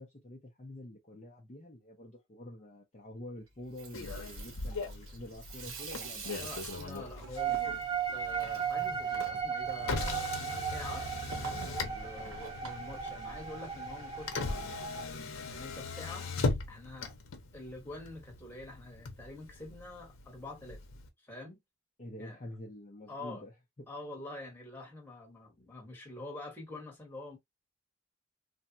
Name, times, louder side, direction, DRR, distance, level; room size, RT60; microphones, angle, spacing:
voice 1, 0.0-6.5 12.1-12.4 22.0-23.5, left 1 dB, 30° left, 0.5 m, -47 dB
Water tap faucet / Sink (filling or washing), 3.6-13.8, right 4 dB, 85° right, 1.0 m, -48 dB
Motor vehicle (road), 3.9-21.1, left 3 dB, 85° left, 0.7 m, -40 dB
voice 2, 6.4-17.1 17.5-20.8 21.2-21.6 22.2-22.4 23.1-23.4 23.9-27.4, left 2 dB, 10° left, 1.1 m, -47 dB
sound 1, 7.4-15.1, right 8 dB, 20° right, 0.5 m, -36 dB
3.4 x 2.1 x 2.6 m
head